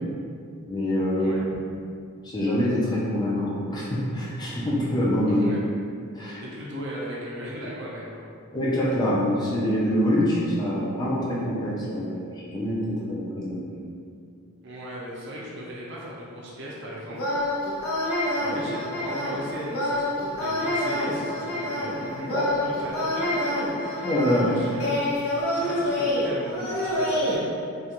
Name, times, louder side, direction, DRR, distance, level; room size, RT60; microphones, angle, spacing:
voice 1, 0.7-1.3 2.2-5.4 6.2-6.4 8.5-13.6 22.3-22.4 24.0-24.5, left 1 dB, 20° left, -6 dB, 0.4 m, -25 dB
voice 2, 5.3-5.6 6.4-8.3 14.6-17.3 18.4-23.3 23.8-27.4, equal, 55° right, -5 dB, 0.5 m, -37 dB
sound 1, 17.1-27.4, left 1 dB, 85° left, 0.6 m, -27 dB
2.4 x 2.2 x 2.8 m, 2.3 s
head